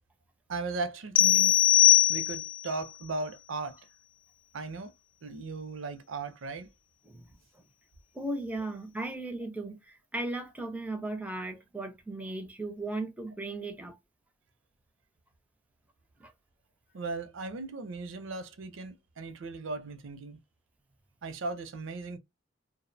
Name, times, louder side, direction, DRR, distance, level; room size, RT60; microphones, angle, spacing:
voice 1, 0.5-1.6 2.1-3.8 4.5-4.9 5.2-6.7 16.9-20.4 21.2-22.2, right 3 dB, 70° right, 0.5 m, -37 dB
sound 1, 1.2-2.7, left 14 dB, 70° left, 0.3 m, -21 dB
voice 2, 8.1-9.8 10.1-14.0 16.2-16.3, right 2 dB, 10° right, 0.4 m, -36 dB
2.4 x 2.0 x 2.6 m
head